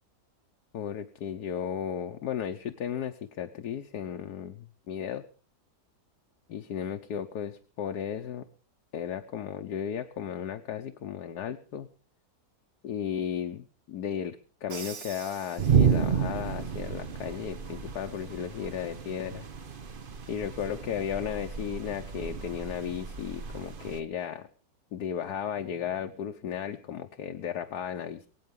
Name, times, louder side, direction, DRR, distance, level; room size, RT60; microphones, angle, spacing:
voice 1, 0.7-5.2 6.5-8.4 8.9-11.9 12.8-19.5 20.3-24.5 24.9-28.3, left 8 dB, 75° left, 5 dB, 1.5 m, -35 dB
Crash cymbal, 14.7-16.4, right 7 dB, 65° right, 1.7 m, -44 dB
sound 1, 15.6-24.0, right 7 dB, 40° right, 1.0 m, -31 dB
23.0 x 8.9 x 5.3 m, 0.41 s
omnidirectional pair, 1.7 m